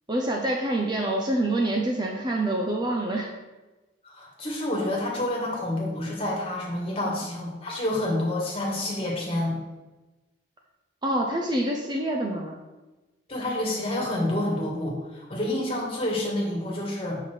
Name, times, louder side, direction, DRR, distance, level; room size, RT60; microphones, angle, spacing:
voice 1, 0.1-3.3 7.0-7.2 11.0-12.5, right 1 dB, 25° right, 0 dB, 0.7 m, -26 dB
voice 2, 4.0-9.6 13.3-17.2, left 1 dB, 30° left, -3 dB, 2.0 m, -28 dB
7.1 x 5.9 x 4.6 m, 1.1 s
head